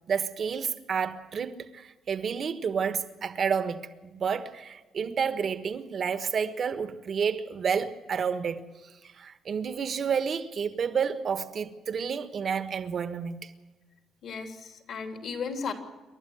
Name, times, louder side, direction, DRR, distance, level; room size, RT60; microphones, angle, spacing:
voice 1, 0.1-8.7 9.2-13.5, right 6 dB, 55° right, 1.4 m, -30 dB
voice 2, 14.2-15.7, left 5 dB, 65° left, 3.4 m, -35 dB
28.0 x 12.0 x 8.1 m
cardioid pair, 90°, 0 cm